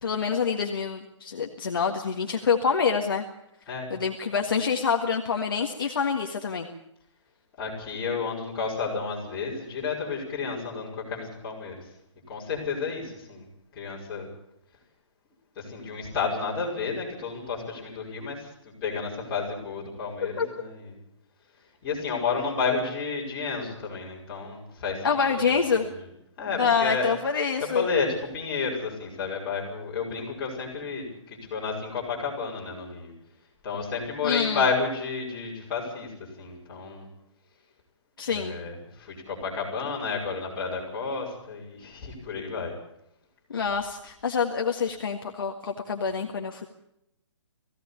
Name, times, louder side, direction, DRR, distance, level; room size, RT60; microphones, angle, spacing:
voice 1, 0.0-3.2 3.9-6.7 20.4-20.5 25.0-25.8 26.6-27.9 34.2-34.6 38.2-38.6 43.5-46.7, left 6 dB, 45° left, 2 dB, 1.7 m, -26 dB
voice 2, 7.6-11.7 12.3-13.5 13.7-14.3 15.6-20.9 21.8-25.4 25.7-25.9 26.4-27.1 27.7-33.1 33.6-36.1 36.4-37.1 38.3-42.7, left 5 dB, 15° left, -6 dB, 5.4 m, -31 dB
19.5 x 16.5 x 8.5 m, 0.81 s
hypercardioid pair, 180°, 16 cm